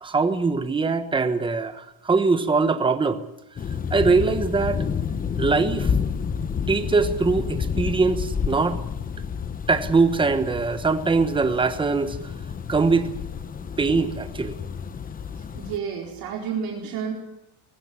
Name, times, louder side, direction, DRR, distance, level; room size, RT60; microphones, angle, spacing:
voice 1, 0.0-3.2 3.9-4.8 5.4-5.9 6.7-8.8 9.7-12.2 12.7-13.1 13.8-14.6, right 4 dB, 10° right, 10 dB, 1.2 m, -22 dB
sound 1, 3.6-15.8, left 6 dB, 20° left, 0.8 m, -30 dB
voice 2, 15.5-17.1, right 7 dB, 50° right, -1 dB, 4.5 m, -30 dB
19.5 x 15.0 x 9.8 m, 0.88 s
cardioid pair, 150°, 44 cm